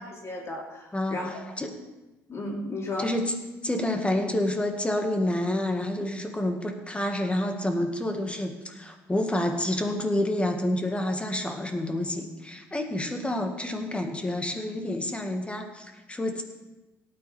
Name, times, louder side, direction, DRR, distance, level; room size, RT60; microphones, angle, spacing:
voice 1, 0.0-1.5 2.3-3.1, left 2 dB, 40° left, -1 dB, 2.7 m, -34 dB
voice 2, 3.0-3.3 3.6-16.4, left 1 dB, 15° left, 4 dB, 1.9 m, -28 dB
18.0 x 9.1 x 3.5 m, 1.1 s
hypercardioid pair, 60°, 7 cm